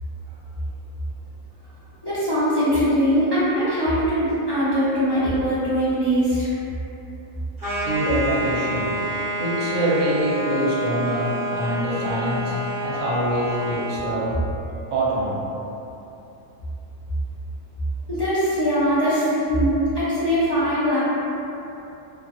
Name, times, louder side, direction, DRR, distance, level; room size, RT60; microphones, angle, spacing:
voice 1, 2.0-6.5 18.1-21.0, equal, 35° left, -14 dB, 0.4 m, -21 dB
sound 1, 7.6-14.1, right 1 dB, 35° right, 1.1 m, -28 dB
voice 2, 7.8-9.1 9.4-14.4 14.9-15.4, right 1 dB, 65° right, -7 dB, 0.9 m, -25 dB
2.5 x 2.4 x 2.7 m, 2.9 s
omnidirectional pair, 1.4 m